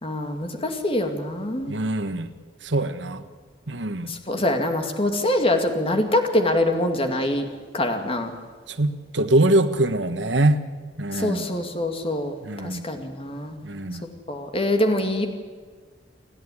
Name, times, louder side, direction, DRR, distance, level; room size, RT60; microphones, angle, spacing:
voice 1, 0.0-1.7 4.1-7.5 7.7-8.3 11.1-13.6 14.3-15.3, left 1 dB, 30° left, 5 dB, 2.4 m, -24 dB
voice 2, 1.7-2.3 2.6-3.2 3.7-4.1 8.7-10.6 11.0-11.5 12.4-12.9 13.6-14.1, right 1 dB, 70° right, 9 dB, 1.6 m, -23 dB
30.0 x 11.0 x 10.0 m, 1.5 s
head